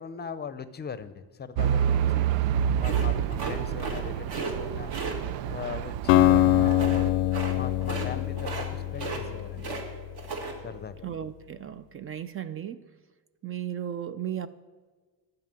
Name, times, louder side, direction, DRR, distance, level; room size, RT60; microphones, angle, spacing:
voice 1, 0.0-2.3 2.8-4.9 5.5-9.7 10.6-11.0, left 6 dB, 25° left, 0.6 m, -40 dB
Truck / Idling, 1.6-7.1, right 9 dB, 85° right, 0.5 m, -28 dB
sound 1, 2.8-4.0 4.3-4.5 4.9-5.2 6.7-7.0 7.3-7.5 7.8-8.1 8.4-8.7 8.9-9.8 10.1-10.5, right 3 dB, 60° right, 2.2 m, -34 dB
Acoustic guitar, 6.1-10.2, left 14 dB, 90° left, 0.6 m, -24 dB
voice 2, 11.0-12.8 13.4-14.5, right 10 dB, 30° right, 0.4 m, -35 dB
13.0 x 5.7 x 9.0 m
cardioid pair, 120°, 44 cm